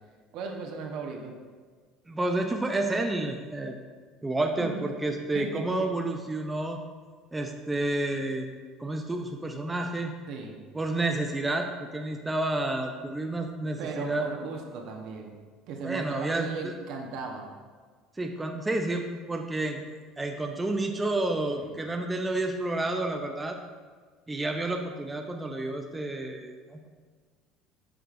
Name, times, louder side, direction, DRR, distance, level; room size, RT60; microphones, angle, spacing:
voice 1, 0.3-1.3 4.7-4.8 5.3-5.6 10.3-10.6 13.8-15.4 15.7-17.5 21.6-21.7, right 4 dB, 65° right, 2 dB, 0.9 m, -36 dB
voice 2, 2.1-3.7 4.2-6.8 7.3-8.5 8.8-10.1 10.7-11.7 11.9-14.3 15.8-16.7 18.2-19.8 20.2-23.6 24.3-26.9, right 2 dB, 15° right, 3 dB, 0.5 m, -30 dB
7.7 x 5.0 x 2.5 m, 1.5 s
supercardioid pair, 110°, 0 cm